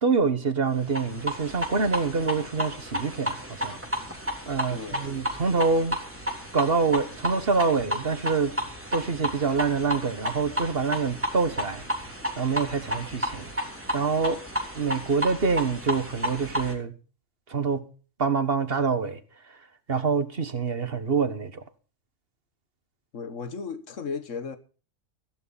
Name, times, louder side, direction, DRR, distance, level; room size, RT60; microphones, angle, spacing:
voice 1, 0.0-3.8 4.5-6.0 6.5-8.5 8.9-11.8 12.4-13.5 13.9-14.4 14.8-16.9 17.5-17.8 18.2-19.2 19.9-21.6, right 5 dB, 50° right, 1.7 m, -26 dB
sound 1, 0.8-16.7, equal, 10° right, 3.3 m, -32 dB
voice 2, 4.7-5.2 23.1-24.6, left 5 dB, 80° left, 1.8 m, -35 dB
15.5 x 13.0 x 4.1 m
omnidirectional pair, 1.3 m